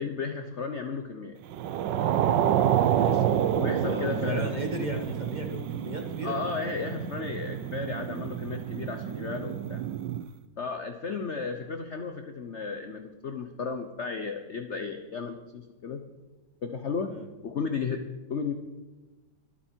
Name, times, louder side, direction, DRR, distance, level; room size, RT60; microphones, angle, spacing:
voice 1, 0.0-1.4 3.5-4.6 6.2-9.8 10.6-16.0 16.6-17.1 17.4-18.0 18.3-18.5, left 5 dB, 50° left, 6 dB, 0.9 m, -34 dB
sound 1, 1.5-10.3, right 10 dB, 70° right, 1.3 m, -28 dB
voice 2, 2.9-3.2 3.8-6.4 17.1-17.3, equal, 25° right, 3 dB, 1.7 m, -36 dB
24.5 x 8.9 x 4.5 m, 1.2 s
omnidirectional pair, 2.1 m